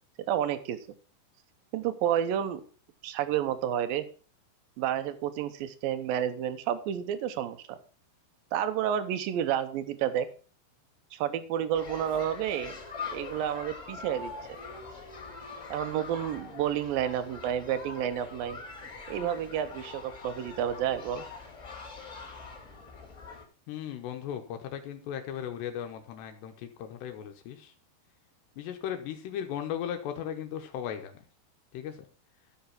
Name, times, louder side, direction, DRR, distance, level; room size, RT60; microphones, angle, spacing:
voice 1, 0.3-0.8 1.7-2.6 3.0-4.1 4.8-7.8 8.5-10.3 11.1-12.8 13.1-14.3 15.7-18.6 19.1-21.2, right 10 dB, 80° right, 11 dB, 2.1 m, -30 dB
sound 1, 11.7-23.4, left 4 dB, 25° left, 2.1 m, -43 dB
voice 2, 23.7-27.7 28.6-31.2 31.7-32.0, left 9 dB, 80° left, 6 dB, 3.1 m, -37 dB
13.0 x 5.8 x 5.7 m, 0.38 s
omnidirectional pair, 5.0 m